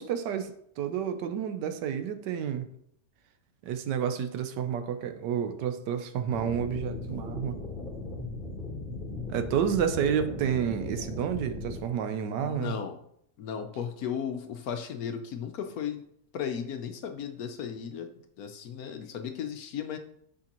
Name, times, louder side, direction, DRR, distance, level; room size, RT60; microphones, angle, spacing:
voice 1, 0.0-2.7 3.6-7.6 9.3-12.8, right 8 dB, 85° right, 9 dB, 1.3 m, -30 dB
sound 1, 6.3-11.8, left 2 dB, 30° left, 1.2 m, -37 dB
voice 2, 12.4-13.0 13.4-16.0 16.3-18.1 18.4-20.0, left 8 dB, 70° left, 7 dB, 1.0 m, -35 dB
8.3 x 5.2 x 2.9 m, 0.71 s
omnidirectional pair, 1.8 m